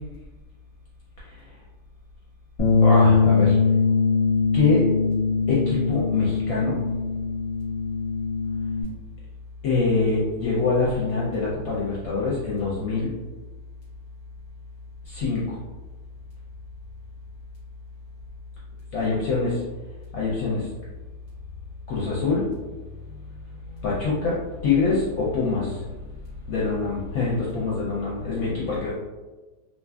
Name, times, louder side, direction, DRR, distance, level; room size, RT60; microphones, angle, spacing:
Bass guitar, 2.6-8.8, left 4 dB, 25° left, 0.9 m, -21 dB
voice 1, 2.8-3.6 4.5-4.8 5.5-6.8 9.6-13.1 15.1-15.6 18.9-19.5 20.1-20.7 21.9-22.5 23.8-24.3 24.6-25.8 26.5-28.9, left 4 dB, 65° left, -6 dB, 0.9 m, -24 dB
2.7 x 2.4 x 2.3 m, 1.2 s
omnidirectional pair, 1.8 m